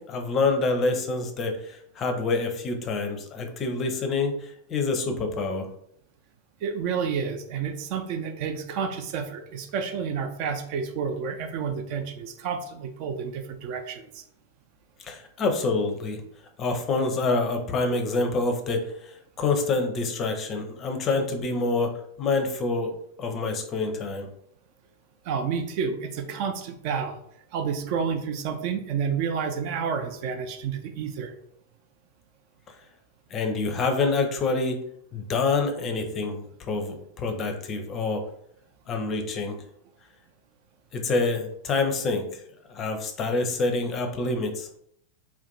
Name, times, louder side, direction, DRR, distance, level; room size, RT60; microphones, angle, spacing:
voice 1, 0.0-5.7 15.0-16.2 16.6-22.9 23.2-24.3 33.3-34.8 35.1-38.3 38.9-39.6 40.9-42.4 42.7-44.7, left 3 dB, 30° left, 5 dB, 0.5 m, -27 dB
voice 2, 6.6-14.2 25.2-27.2 27.5-31.3, right 6 dB, 45° right, 6 dB, 0.4 m, -30 dB
2.5 x 2.2 x 3.9 m, 0.71 s
figure-of-eight pair, 90°, 0 cm